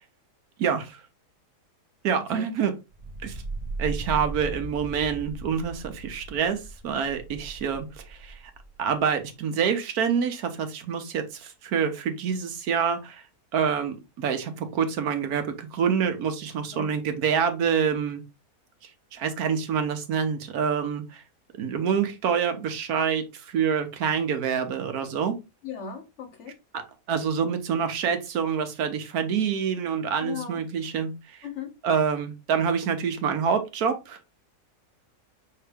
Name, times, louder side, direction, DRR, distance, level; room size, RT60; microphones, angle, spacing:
voice 1, 0.6-1.0 2.0-2.7 3.2-3.4 3.8-8.4 8.8-13.2 13.5-18.2 19.1-21.2 21.6-25.4 26.7-26.8 27.1-31.4 31.8-34.2, right 7 dB, 75° right, 1.3 m, -27 dB
voice 2, 2.1-2.4 16.7-16.9 25.6-26.6 30.2-30.6 31.4-31.7, left 7 dB, 60° left, 0.9 m, -37 dB
Cinematic Rumble, 2.9-9.0, right 2 dB, 55° right, 0.4 m, -37 dB
5.5 x 2.9 x 3.4 m
omnidirectional pair, 1.7 m